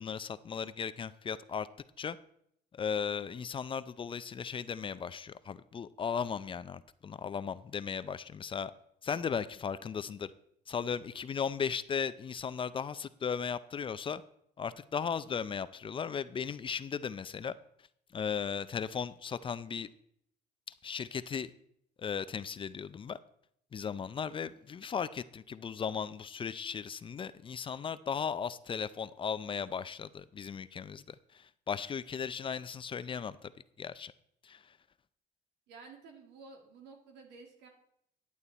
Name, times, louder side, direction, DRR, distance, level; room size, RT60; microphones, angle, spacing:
voice 1, 0.0-1.7 2.0-2.2 2.7-8.7 9.0-10.3 10.7-14.2 14.6-17.5 18.1-19.9 20.8-21.5 22.0-23.2 23.7-33.5 33.8-34.1 34.4-34.8, left 6 dB, 30° left, 15 dB, 0.5 m, -36 dB
voice 2, 35.7-37.7, right 4 dB, 85° right, 3 dB, 2.4 m, -52 dB
11.0 x 8.5 x 4.1 m, 0.71 s
cardioid pair, 110°, 17 cm